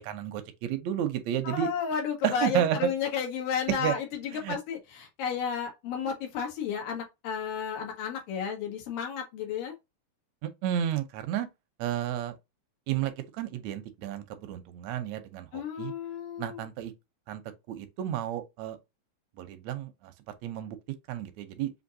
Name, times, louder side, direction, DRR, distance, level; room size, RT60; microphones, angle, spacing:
voice 1, 0.0-1.7 2.2-2.8 3.8-3.9 4.3-4.6 10.4-11.5 11.8-12.3 12.9-15.9 16.4-16.9 17.3-17.4 17.7-18.8 19.4-20.1 20.4-20.8 21.1-21.7, right 11 dB, 75° right, 1.7 m, -32 dB
voice 2, 1.4-9.7 15.5-16.6, left 7 dB, 85° left, 3.1 m, -32 dB
6.2 x 2.8 x 2.6 m
omnidirectional pair, 3.9 m